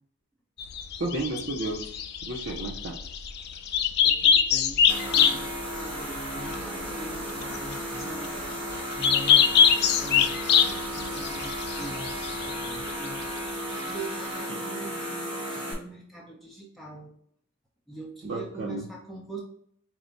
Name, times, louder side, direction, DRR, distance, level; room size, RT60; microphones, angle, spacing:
sound 1, 0.6-13.5, left 7 dB, 50° left, 0.3 m, -24 dB
voice 1, 1.0-2.0 2.3-3.0 14.5-14.6 18.2-18.8, right 2 dB, 60° right, -2 dB, 0.6 m, -32 dB
voice 2, 4.0-8.3 8.6-13.2 13.8-17.1 17.9-19.4, right 2 dB, ahead, -3 dB, 0.7 m, -43 dB
sound 2, 4.9-15.7, equal, 25° right, 1.0 m, -34 dB
4.5 x 2.1 x 3.8 m, 0.65 s
head